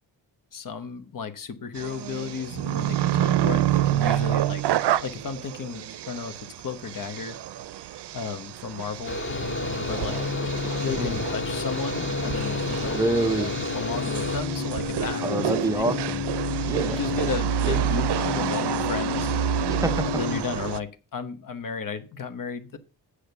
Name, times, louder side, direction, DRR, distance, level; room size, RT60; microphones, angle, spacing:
voice 1, 0.5-4.6 5.0-6.3 6.6-7.4 8.1-9.2 9.8-10.2 10.8-13.0 13.3-15.8 16.9-19.3 20.1-22.8, left 5 dB, 50° left, 10 dB, 1.1 m, -33 dB
sound 1, 1.7-20.8, right 13 dB, 75° right, 0.6 m, -28 dB
Mechanical fan, 9.0-14.4, left 1 dB, 30° left, 1.9 m, -32 dB
sound 2, 9.2-20.4, left 7 dB, 70° left, 1.6 m, -32 dB
voice 2, 12.9-13.5 15.2-16.3 16.6-17.0 19.7-20.1, right 2 dB, 10° right, 10 dB, 0.6 m, -26 dB
8.6 x 5.0 x 6.9 m, 0.34 s
wide cardioid pair, 165°, 40 cm